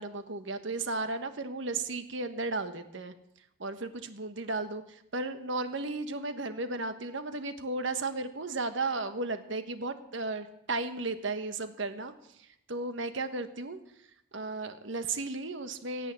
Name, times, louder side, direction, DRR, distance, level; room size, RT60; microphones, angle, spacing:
voice 1, 0.0-3.1 3.6-12.1 12.4-13.8 14.3-16.1, right 3 dB, 65° right, 9 dB, 1.3 m, -34 dB
17.5 x 8.6 x 8.3 m, 0.79 s
head